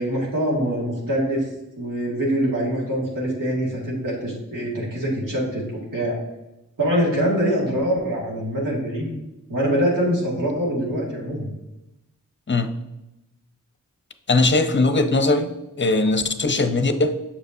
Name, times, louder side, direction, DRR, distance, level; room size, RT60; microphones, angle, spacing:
voice 1, 0.0-1.5 1.8-6.2 6.8-9.1 9.5-11.5, equal, 80° right, 2.1 m, -24 dB
voice 2, 14.3-17.2, left 2 dB, 35° left, 0.6 m, -20 dB
7.1 x 5.2 x 2.7 m
cardioid pair, 45°, 32 cm